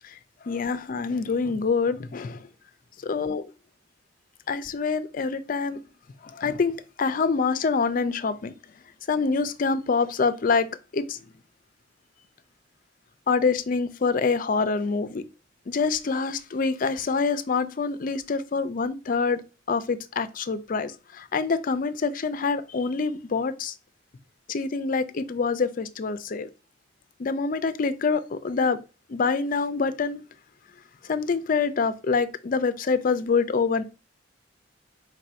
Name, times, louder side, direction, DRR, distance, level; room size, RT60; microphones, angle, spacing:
voice 1, 0.5-2.4 3.0-3.4 4.5-5.8 6.2-8.5 9.1-10.7 10.9-11.2 13.3-15.2 15.7-19.4 19.7-23.7 24.5-26.5 27.2-28.8 29.1-30.2 31.1-33.8, left 4 dB, 45° left, 0.4 m, -26 dB
4.6 x 2.6 x 4.3 m
head